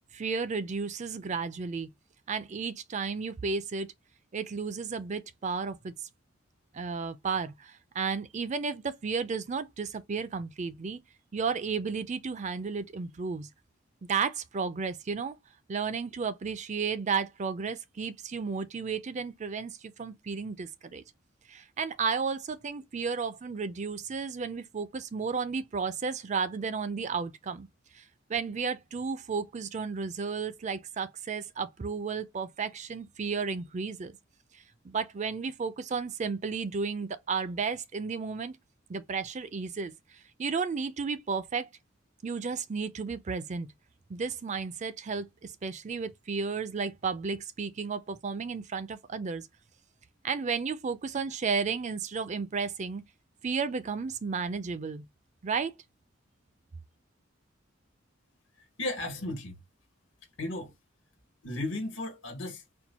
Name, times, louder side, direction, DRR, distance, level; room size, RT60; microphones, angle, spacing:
voice 1, 0.1-1.9 2.3-3.9 4.3-5.9 6.7-11.0 11.3-13.5 14.1-15.4 15.7-21.0 21.5-27.7 28.3-34.1 34.8-38.5 38.9-39.9 40.4-41.7 42.2-43.7 44.1-45.3 45.6-49.5 50.2-53.0 53.4-55.0 55.4-55.7, right 5 dB, 35° right, 0.4 m, -33 dB
voice 2, 58.8-59.6 60.4-60.7 61.4-62.6, left 2 dB, 75° left, 1.3 m, -34 dB
4.4 x 2.2 x 4.1 m
head